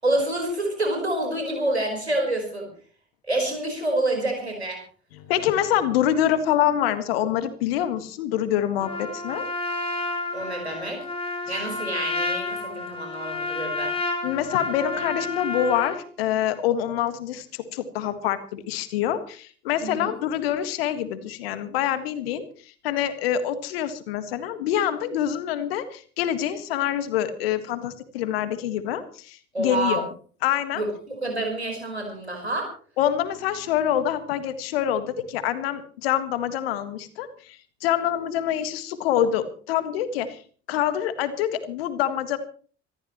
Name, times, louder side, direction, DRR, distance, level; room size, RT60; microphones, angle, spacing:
voice 1, 0.0-2.7 3.3-4.8 10.3-11.0 11.5-13.9 19.8-20.1 29.5-30.0 30.7-32.7, right 1 dB, 90° right, 2 dB, 4.7 m, -27 dB
voice 2, 5.1-9.4 11.5-11.6 14.2-22.5 22.8-30.1 30.4-30.8 33.0-40.4 40.7-42.4, left 10 dB, 65° left, 11 dB, 1.8 m, -26 dB
Trumpet, 8.8-16.0, left 3 dB, 20° left, 4.8 m, -30 dB
26.5 x 13.5 x 3.1 m, 0.43 s
figure-of-eight pair, 55°, 32 cm